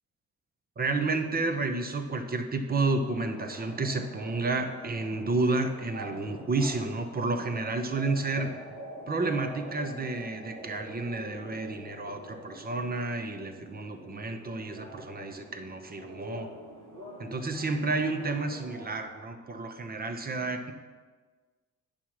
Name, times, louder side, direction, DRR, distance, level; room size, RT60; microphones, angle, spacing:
voice 1, 0.8-8.5 9.1-16.5 17.2-20.7, right 3 dB, 30° right, 7 dB, 0.9 m, -31 dB
sound 1, 3.1-19.0, equal, 85° right, 2.0 m, -46 dB
8.8 x 5.8 x 4.8 m, 1.4 s
cardioid pair, 90°, 30 cm